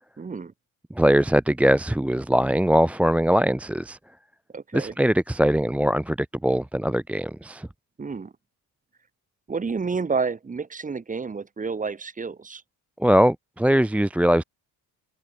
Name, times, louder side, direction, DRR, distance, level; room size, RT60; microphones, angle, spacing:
voice 1, 0.2-0.5 4.5-4.9 8.0-8.3 9.5-12.6, right 4 dB, 20° right, 1.3 m, -30 dB
voice 2, 0.9-4.0 4.7-7.7 13.0-14.4, equal, 5° right, 0.5 m, -21 dB
cardioid pair, 125°, 36 cm